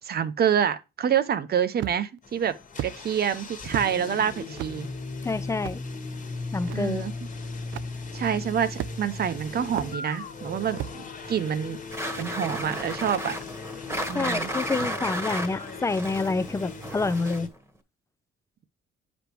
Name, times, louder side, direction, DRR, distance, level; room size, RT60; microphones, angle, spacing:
voice 1, 0.0-2.6 2.8-4.9 6.7-7.1 8.1-11.8 12.2-13.4 14.1-14.5, right 8 dB, 50° right, 0.8 m, -27 dB
sound 1, 1.8-2.2 2.8-3.0 3.7-3.9 4.6-4.8 5.6-5.8 6.7-6.8 7.7-7.9 8.8-9.2 9.8-9.9 10.8-11.0, right 12 dB, 75° right, 0.4 m, -33 dB
sound 2, 2.2-17.5, left 3 dB, 40° left, 1.4 m, -38 dB
voice 2, 5.2-5.8 6.5-7.0 14.1-17.5, left 3 dB, 15° left, 0.5 m, -28 dB
sound 3, 11.9-17.6, right 1 dB, 10° right, 1.3 m, -33 dB
8.6 x 5.2 x 3.0 m
cardioid pair, 90°, 20 cm